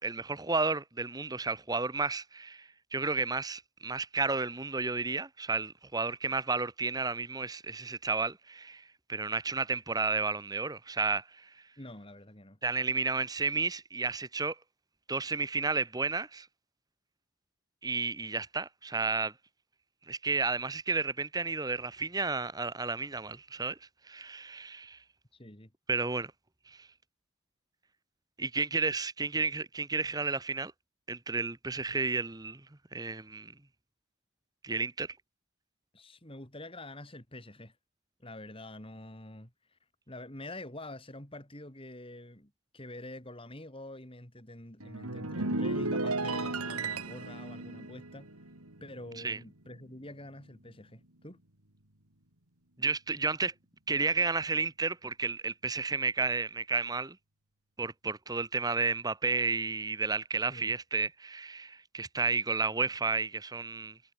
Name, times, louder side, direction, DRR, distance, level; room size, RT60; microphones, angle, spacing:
voice 1, 0.0-8.8 9.1-11.5 12.6-14.6 15.1-16.5 17.8-19.3 20.1-23.8 24.1-25.0 25.9-26.3 26.7-26.9 28.4-30.7 31.1-32.6 32.9-33.5 34.6-35.2 49.2-49.4 52.8-53.5 53.9-57.2 57.8-64.0, right 4 dB, 15° right, 1.2 m, -32 dB
voice 2, 11.8-12.6 25.3-25.7 35.9-37.8 38.2-39.8 40.1-48.3 48.8-51.4 60.5-60.7, left 1 dB, 25° left, 3.8 m, -46 dB
Harp Glissando Up, 44.8-49.4 49.7-50.0, right 2 dB, 85° right, 4.2 m, -35 dB
head